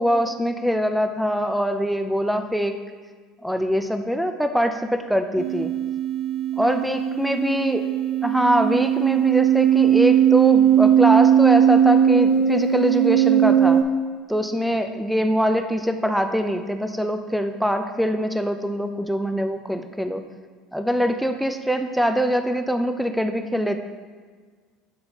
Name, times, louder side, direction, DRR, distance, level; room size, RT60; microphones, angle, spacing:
voice 1, 0.0-2.8 3.4-5.7 6.6-7.8 8.2-13.8 14.3-20.2 20.7-23.8, equal, ahead, 7 dB, 0.5 m, -23 dB
sound 1, 5.4-13.8, right 10 dB, 55° right, 0.6 m, -18 dB
8.4 x 3.9 x 3.0 m, 1.5 s
hypercardioid pair, 75°, 0 cm